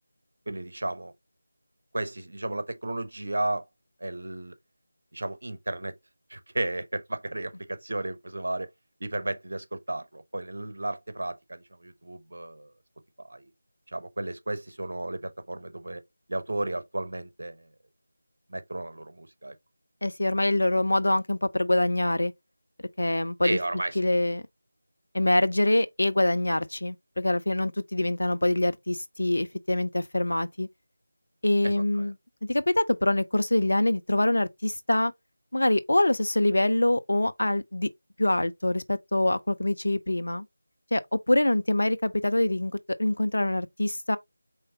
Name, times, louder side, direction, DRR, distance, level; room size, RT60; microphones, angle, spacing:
voice 1, 0.5-1.1 1.9-3.6 4.0-4.6 5.1-6.0 6.3-8.7 9.0-12.7 13.2-13.5 13.9-16.0 16.3-17.7 18.5-19.5 23.4-24.1 31.6-32.1, right 2 dB, 55° right, 0.8 m, -33 dB
voice 2, 20.0-22.3 23.0-23.6 24.0-24.4 25.1-30.7 31.4-32.1 32.4-35.1 35.5-37.9 38.2-40.5 40.9-42.7 43.0-44.2, left 1 dB, 65° left, 0.5 m, -25 dB
4.6 x 3.3 x 2.8 m
figure-of-eight pair, 165°, 0 cm